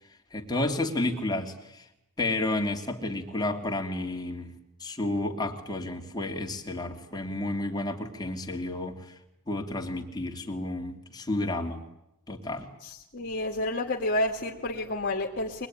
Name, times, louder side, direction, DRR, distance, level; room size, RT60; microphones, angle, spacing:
voice 1, 0.3-1.8 2.2-4.5 4.8-9.0 9.5-11.8 12.3-12.7, left 2 dB, 20° left, 3 dB, 2.8 m, -31 dB
voice 2, 12.8-15.7, left 1 dB, 50° left, 1 dB, 2.1 m, -30 dB
24.0 x 20.5 x 10.0 m, 0.86 s
head